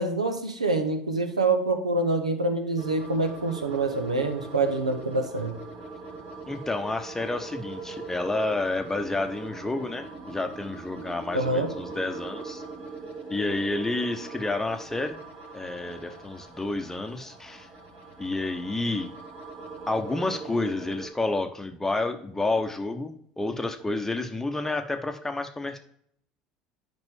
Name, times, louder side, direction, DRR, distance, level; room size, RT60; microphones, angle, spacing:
voice 1, 0.0-5.6 11.3-11.7, right 2 dB, 90° right, 8 dB, 0.9 m, -26 dB
sound 1, 2.8-21.1, right 3 dB, 50° right, 2.5 m, -41 dB
voice 2, 6.5-12.6 13.3-15.2 15.5-17.7 18.2-19.1 19.9-25.8, left 2 dB, 10° left, 5 dB, 0.9 m, -30 dB
10.5 x 5.3 x 3.6 m, 0.67 s
figure-of-eight pair, 70°, 4 cm